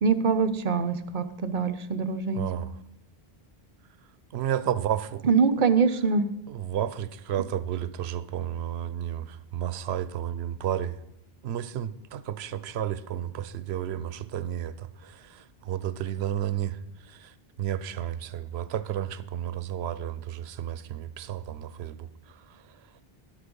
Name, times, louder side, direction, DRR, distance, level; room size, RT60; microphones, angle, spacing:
voice 1, 0.0-2.4 5.2-6.3, right 5 dB, 55° right, 0.9 m, -24 dB
voice 2, 2.3-2.7 4.3-5.2 6.5-11.0 11.4-22.6, right 10 dB, 90° right, 0.9 m, -32 dB
11.5 x 8.3 x 5.3 m
omnidirectional pair, 1.0 m